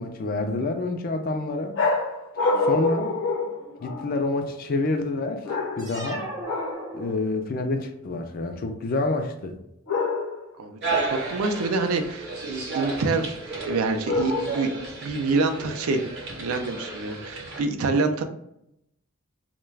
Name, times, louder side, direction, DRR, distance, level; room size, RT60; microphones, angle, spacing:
voice 1, 0.0-1.8 2.6-3.1 3.8-5.5 5.8-6.2 6.9-9.6, left 2 dB, 40° left, 5 dB, 0.3 m, -27 dB
sound 1, 1.7-4.3 5.4-6.1 6.4-6.9 9.9-10.5 14.1-14.8, left 3 dB, 60° left, 0.8 m, -26 dB
sound 2, 5.8-7.6, right 2 dB, 15° right, 0.5 m, -37 dB
voice 2, 10.6-13.4 13.6-14.7 15.0-16.0 16.4-18.2, right 3 dB, 75° right, 6 dB, 0.4 m, -26 dB
sound 3, 10.8-17.6, right 3 dB, 50° right, 0.8 m, -33 dB
2.3 x 2.2 x 3.2 m, 0.80 s
head